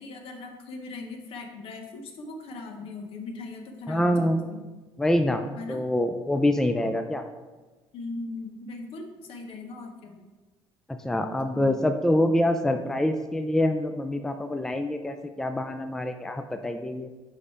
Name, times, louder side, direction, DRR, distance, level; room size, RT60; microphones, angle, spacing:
voice 1, 0.0-4.6 5.5-5.9 7.9-10.3 11.4-11.8, left 3 dB, 65° left, 4 dB, 1.0 m, -39 dB
voice 2, 3.9-4.4 5.0-7.2 11.0-17.1, left 1 dB, 5° left, 7 dB, 0.4 m, -25 dB
5.3 x 4.9 x 4.2 m, 1.2 s
cardioid pair, 95°, 10 cm